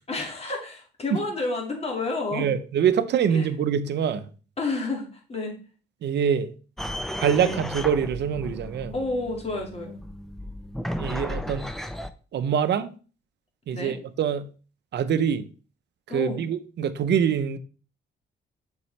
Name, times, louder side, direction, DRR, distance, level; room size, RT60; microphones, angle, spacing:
voice 1, 0.1-2.5 3.3-3.5 4.6-5.5 7.4-7.6 8.9-10.0 13.7-14.0 16.1-16.4, left 3 dB, 30° left, 2.0 m, -30 dB
voice 2, 2.3-4.3 6.0-6.5 7.2-8.9 11.0-11.7 12.3-12.9 13.7-14.5 14.9-15.5 16.1-17.6, right 8 dB, 60° right, 0.7 m, -24 dB
sound 1, 6.8-12.1, equal, ahead, 0.5 m, -34 dB
6.9 x 4.5 x 3.2 m
cardioid pair, 90°, 20 cm